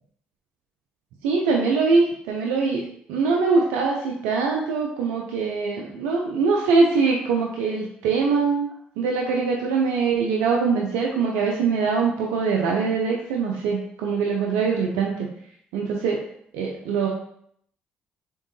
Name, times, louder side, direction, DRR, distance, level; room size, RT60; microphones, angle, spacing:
voice 1, 1.2-8.7 9.0-15.3 15.7-16.2 16.5-17.1, right 4 dB, 85° right, -1 dB, 0.6 m, -23 dB
4.4 x 3.6 x 3.2 m, 0.68 s
supercardioid pair, 55°, 4 cm